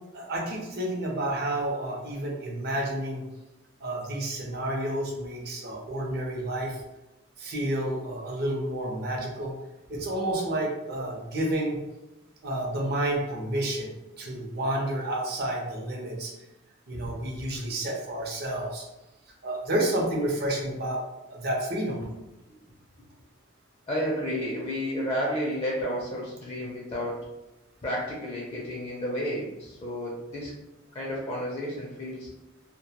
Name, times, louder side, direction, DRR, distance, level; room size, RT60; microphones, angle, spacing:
voice 1, 0.1-3.2 3.8-6.8 7.4-9.6 9.9-11.8 12.4-16.3 16.9-18.9 19.4-21.0 21.3-22.1, right 1 dB, 55° right, -1 dB, 0.6 m, -30 dB
voice 2, 23.9-27.2 27.8-30.5 30.9-32.3, equal, 30° left, -4 dB, 0.5 m, -31 dB
2.1 x 2.1 x 2.8 m, 0.96 s
head